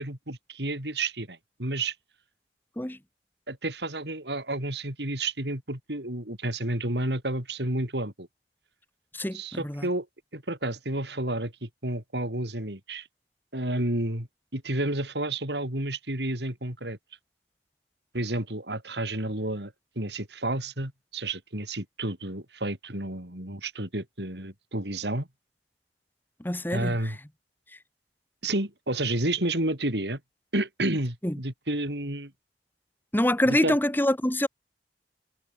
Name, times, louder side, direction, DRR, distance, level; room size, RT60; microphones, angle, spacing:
voice 1, 0.0-1.9 3.5-8.3 9.3-10.1 10.3-13.1 13.5-14.3 14.5-17.0 18.1-25.3 26.7-27.2 28.4-30.2 30.5-32.3 33.4-33.8, right 1 dB, 70° right, 5.4 m, -31 dB
voice 2, 9.1-9.9 26.4-26.9 31.2-31.3 33.1-34.5, left 1 dB, 10° left, 1.4 m, -25 dB
head